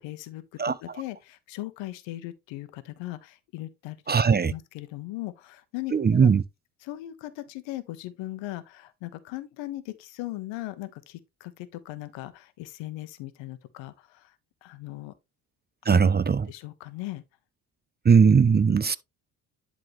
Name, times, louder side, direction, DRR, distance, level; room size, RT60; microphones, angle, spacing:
voice 1, 0.0-4.0 4.4-6.3 6.8-14.3 14.6-15.1 15.9-16.0 16.5-17.2, left 16 dB, 85° left, 1.0 m, -38 dB
voice 2, 4.1-4.5 5.9-6.4 15.9-16.4 18.0-19.0, right 6 dB, 25° right, 0.5 m, -19 dB
11.0 x 3.8 x 3.1 m
supercardioid pair, 55°, 44 cm